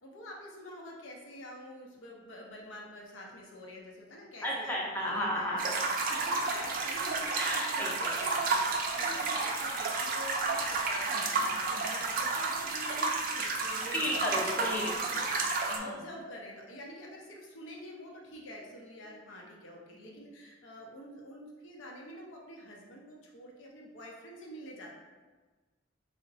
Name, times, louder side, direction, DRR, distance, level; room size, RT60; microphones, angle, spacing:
voice 1, 0.0-14.1 14.8-25.0, left 1 dB, 75° left, -1 dB, 0.6 m, -47 dB
voice 2, 4.4-6.4 7.3-8.1 9.0-9.3 11.1-11.2 11.7-11.8 13.9-15.2 15.7-15.9 20.1-20.2, left 1 dB, 10° left, -4 dB, 0.5 m, -35 dB
sound 1, 5.6-15.8, right 3 dB, 45° right, 0.4 m, -31 dB
3.8 x 2.1 x 2.6 m, 1.3 s
head